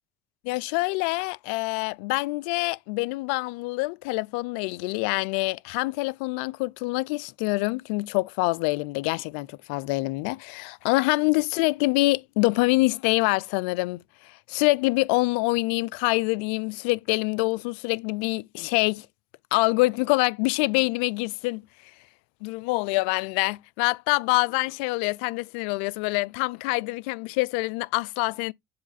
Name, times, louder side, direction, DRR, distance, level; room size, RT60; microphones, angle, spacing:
voice 1, 0.4-19.1 19.5-21.6 22.4-28.5, left 24 dB, 85° left, 0.3 m, -25 dB
7.6 x 3.5 x 4.0 m
supercardioid pair, 95°, 6 cm